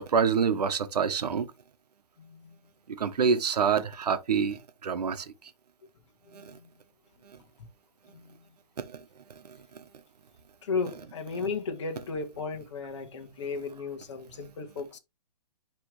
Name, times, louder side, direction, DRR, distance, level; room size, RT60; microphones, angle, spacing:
voice 1, 0.0-1.5 3.0-5.3 6.3-6.5 7.3-7.4 8.8-9.0 9.4-9.8 11.3-11.4, right 6 dB, 75° right, 1.1 m, -27 dB
voice 2, 2.2-2.5 6.3-6.5 8.1-8.2 10.6-15.0, left 4 dB, 45° left, 1.6 m, -35 dB
10.0 x 3.4 x 3.2 m
hypercardioid pair, 180°, 21 cm